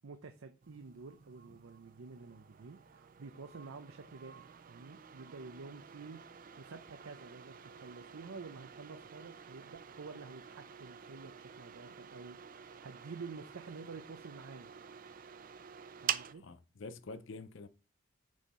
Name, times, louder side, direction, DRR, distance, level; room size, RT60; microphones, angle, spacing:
voice 1, 0.0-14.7 16.0-16.4, right 4 dB, 85° right, 0.6 m, -50 dB
sound 1, 0.6-16.3, right 9 dB, 40° right, 0.4 m, -47 dB
voice 2, 16.3-17.7, left 3 dB, 65° left, 0.5 m, -47 dB
6.3 x 5.5 x 4.2 m
head